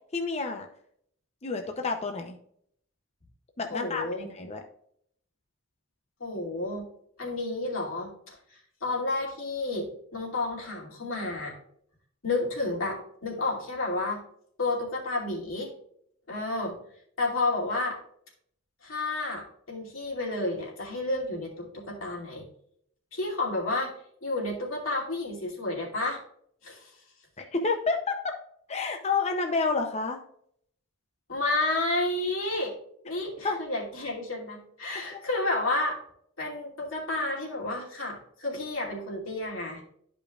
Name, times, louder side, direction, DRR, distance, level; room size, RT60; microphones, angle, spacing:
voice 1, 0.1-0.7 1.4-2.4 3.6-4.6 27.4-28.1 28.7-30.2 33.4-33.6, left 4 dB, 30° left, 4 dB, 0.6 m, -29 dB
voice 2, 3.7-4.3 6.2-6.9 7.2-8.4 8.8-11.5 12.2-14.2 14.6-15.7 16.3-16.7 17.2-18.0 18.8-22.4 23.1-23.9 24.2-26.2 26.6-26.9 31.3-32.7 33.0-36.0 36.4-39.8, left 2 dB, 90° left, -3 dB, 2.6 m, -31 dB
12.0 x 5.1 x 2.4 m, 0.66 s
head